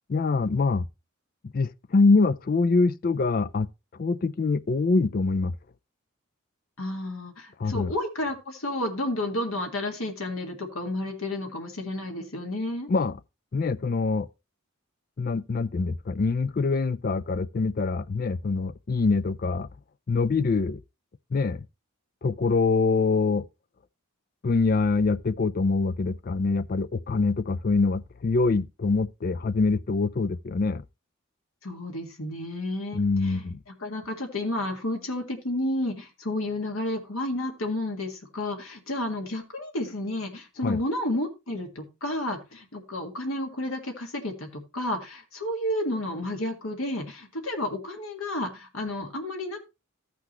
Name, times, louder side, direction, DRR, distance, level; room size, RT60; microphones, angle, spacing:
voice 1, 0.1-0.9 1.5-3.7 4.0-5.5 7.6-7.9 12.9-13.2 13.5-14.3 15.2-19.7 20.1-20.8 21.3-21.6 22.2-23.5 24.4-30.8 32.9-33.6 40.6-40.8, left 4 dB, 40° left, 0.4 m, -24 dB
voice 2, 6.8-12.9 31.6-33.5 33.8-49.6, left 1 dB, 75° left, 1.8 m, -31 dB
14.0 x 6.0 x 3.0 m
head